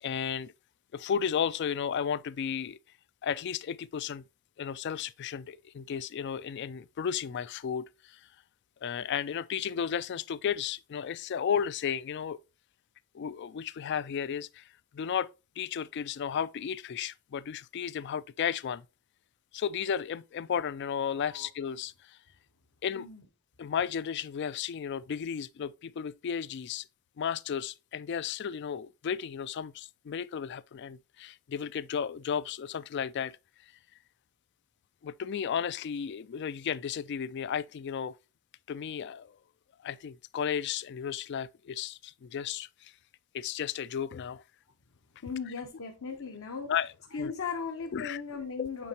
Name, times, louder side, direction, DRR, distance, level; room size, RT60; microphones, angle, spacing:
voice 1, 0.0-0.5 0.9-2.8 3.2-4.2 4.6-8.2 8.8-12.4 13.1-14.7 14.9-15.3 15.6-18.8 19.5-22.2 22.8-23.1 23.6-26.8 27.2-33.4 35.0-38.1 38.7-39.4 39.8-42.9 43.3-44.4 46.7-46.9 47.2-47.3 47.9-48.2 48.6-48.9, left 7 dB, 50° left, 0.3 m, -34 dB
voice 2, 45.2-46.7 47.1-48.9, left 5 dB, 65° left, 0.9 m, -37 dB
8.6 x 4.3 x 2.8 m
head